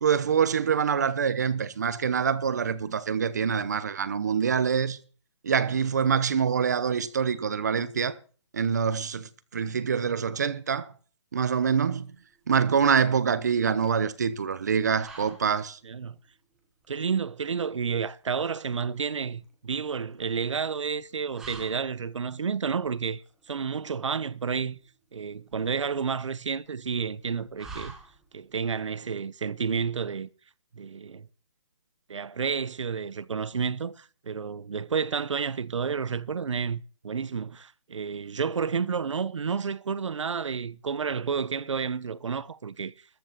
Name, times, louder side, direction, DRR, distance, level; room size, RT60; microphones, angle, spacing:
voice 1, 0.0-5.0 5.4-8.2 8.5-10.9 11.3-12.1 12.5-15.8, right 6 dB, 35° right, 0.9 m, -25 dB
sound 1, 11.9-28.6, right 3 dB, 5° right, 1.1 m, -51 dB
voice 2, 15.8-16.2 16.9-24.8 25.1-27.9 28.3-30.3 30.7-31.3 32.1-42.9, right 6 dB, 80° right, 0.9 m, -30 dB
13.5 x 9.6 x 5.9 m
hypercardioid pair, 180°, 15 cm